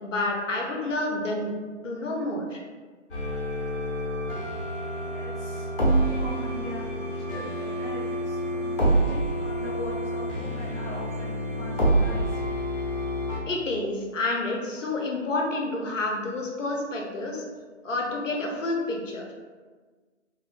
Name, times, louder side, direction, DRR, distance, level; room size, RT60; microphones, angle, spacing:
voice 1, 0.0-1.5 1.8-2.6 13.5-17.4 17.8-19.2, left 2 dB, 85° left, 0 dB, 0.8 m, -29 dB
sound 1, 3.1-13.4, right 1 dB, 45° left, 0.8 m, -27 dB
voice 2, 5.0-5.7 6.1-12.4, equal, ahead, -22 dB, 0.3 m, -40 dB
2.8 x 2.4 x 2.5 m, 1.4 s
hypercardioid pair, 150°, 37 cm